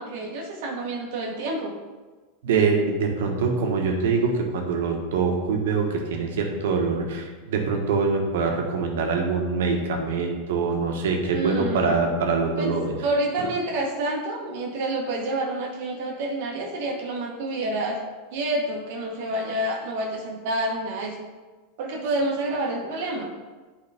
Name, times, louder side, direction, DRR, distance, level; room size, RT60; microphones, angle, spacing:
voice 1, 0.0-1.7 11.2-12.0 12.6-18.0 18.3-21.3 21.8-23.3, right 1 dB, 65° right, 0 dB, 1.1 m, -28 dB
voice 2, 2.4-12.9, right 4 dB, 85° right, 2 dB, 1.3 m, -24 dB
8.3 x 4.8 x 3.6 m, 1.3 s
supercardioid pair, 140°, 0 cm